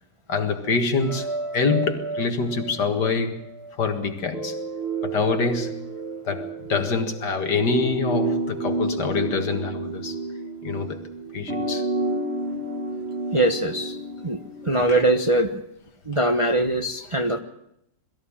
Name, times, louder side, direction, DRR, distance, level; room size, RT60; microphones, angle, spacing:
voice 1, 0.3-3.4 3.8-4.6 5.0-5.9 6.3-10.2 10.6-11.9 14.9-15.0, left 4 dB, 70° left, 2.4 m, -25 dB
sound 1, 1.0-3.8 4.3-15.3, right 3 dB, 35° right, 1.6 m, -31 dB
voice 2, 13.3-13.9 14.2-15.6 16.0-17.4, right 1 dB, 20° right, 1.1 m, -22 dB
22.0 x 14.5 x 8.7 m
omnidirectional pair, 1.9 m